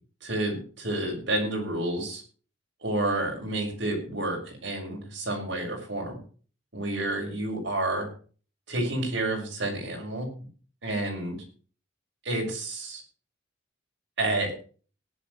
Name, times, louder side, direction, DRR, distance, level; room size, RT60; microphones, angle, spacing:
voice 1, 0.2-2.2 2.8-6.2 6.7-8.1 8.7-10.3 10.8-11.4 12.2-13.0 14.2-14.5, right 1 dB, 65° right, 0 dB, 6.4 m, -29 dB
19.0 x 11.0 x 3.2 m, 0.40 s
head